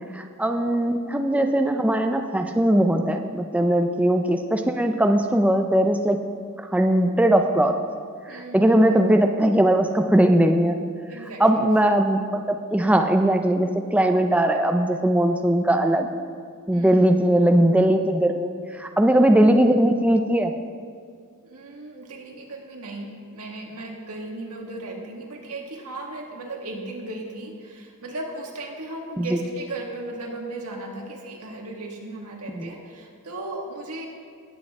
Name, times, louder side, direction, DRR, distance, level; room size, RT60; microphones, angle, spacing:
voice 1, 0.1-6.2 6.7-7.7 8.3-10.8 11.4-12.2 12.5-16.1 16.7-20.5 29.2-29.3 32.5-32.7, right 1 dB, 5° right, 5 dB, 0.4 m, -20 dB
voice 2, 8.3-9.2 11.1-11.4 16.7-17.2 21.4-34.1, right 2 dB, 85° right, 0 dB, 1.7 m, -36 dB
18.0 x 7.5 x 3.6 m, 2.2 s
head